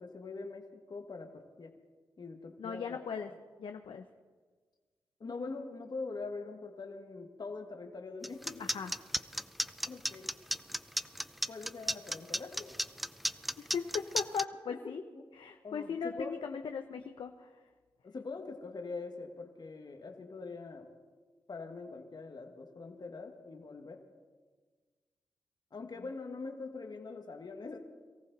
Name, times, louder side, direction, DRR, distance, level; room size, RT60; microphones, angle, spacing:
voice 1, 0.0-1.7 2.2-3.0 5.2-8.6 9.9-10.3 11.5-12.7 14.7-14.8 15.1-15.3 15.6-16.6 18.0-20.9 21.5-24.0 25.7-27.8, left 3 dB, 55° left, 4 dB, 1.6 m, -43 dB
voice 2, 2.6-3.3 3.6-4.0 8.6-8.9 13.6-15.0 15.3-17.6, left 6 dB, 75° left, 6 dB, 0.7 m, -38 dB
sound 1, 8.2-14.4, equal, ahead, 0.4 m, -33 dB
23.0 x 14.5 x 4.0 m, 1.4 s
cardioid pair, 50°, 9 cm